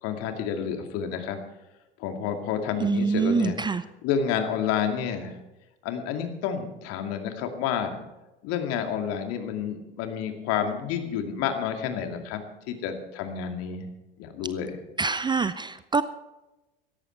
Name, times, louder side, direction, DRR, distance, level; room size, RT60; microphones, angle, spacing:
voice 1, 0.0-1.4 2.0-3.6 4.0-5.3 5.8-8.0 8.4-12.4 12.7-13.9 14.2-14.8, left 8 dB, 55° left, 6 dB, 2.4 m, -29 dB
voice 2, 2.8-3.8 15.0-16.0, right 5 dB, 15° right, 15 dB, 0.5 m, -25 dB
17.0 x 13.5 x 4.5 m, 1.0 s
hypercardioid pair, 75°, 30 cm